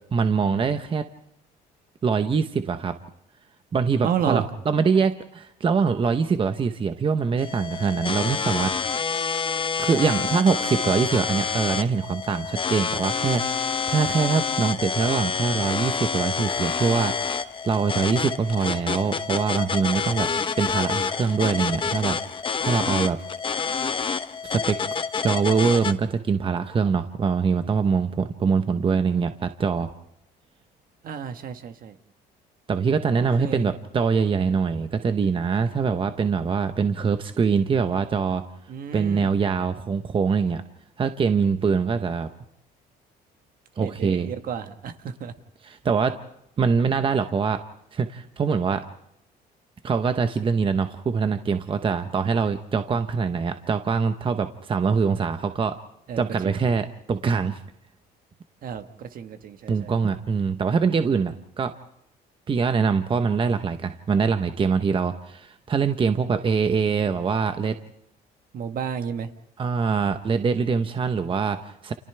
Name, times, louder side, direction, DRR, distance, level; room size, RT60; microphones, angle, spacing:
voice 1, 0.1-1.1 2.0-3.0 3.7-8.7 9.8-17.1 17.6-20.3 20.6-22.2 22.6-23.2 24.4-24.8 25.2-29.9 32.7-38.4 38.9-40.6 41.0-42.3 43.8-44.3 45.6-46.2 46.6-47.6 47.9-48.8 49.8-55.8 56.2-57.6 59.7-61.7 62.5-67.7 69.6-71.9, right 5 dB, 30° right, 8 dB, 1.0 m, -23 dB
voice 2, 4.0-4.4 31.0-31.9 33.1-33.7 38.7-39.3 43.8-45.3 56.1-56.6 58.6-59.9 68.5-69.3, right 7 dB, 55° right, 8 dB, 1.5 m, -31 dB
sound 1, 7.4-25.9, left 5 dB, 30° left, 1.0 m, -28 dB
29.5 x 28.5 x 3.4 m, 0.74 s
cardioid pair, 110°, 17 cm